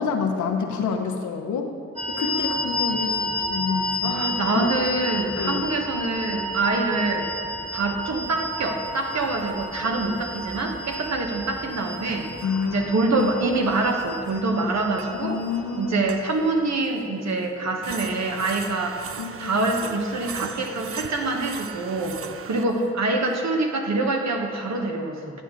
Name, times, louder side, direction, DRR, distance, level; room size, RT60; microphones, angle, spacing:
voice 1, 0.0-1.7 2.1-4.2 4.5-4.8 5.4-5.6 12.4-12.9 15.2-16.0 19.2-19.5, left 5 dB, 90° left, 3 dB, 0.7 m, -28 dB
sound 1, 2.0-16.5, left 2 dB, 25° right, 1.4 m, -32 dB
sound 2, 4.0-4.1 4.9-5.0 6.7-6.8 8.6-9.8 10.2-10.3 10.6-10.7 10.9-11.1 11.9-17.0 17.4-17.5 17.8-22.9, right 7 dB, 50° right, 0.5 m, -40 dB
voice 2, 4.0-7.3 7.7-12.3 12.6-15.4 15.8-19.0 19.4-22.2 22.4-25.4, right 2 dB, 65° right, 2 dB, 1.1 m, -25 dB
9.3 x 8.2 x 3.7 m, 2.4 s
cardioid pair, 55°, 29 cm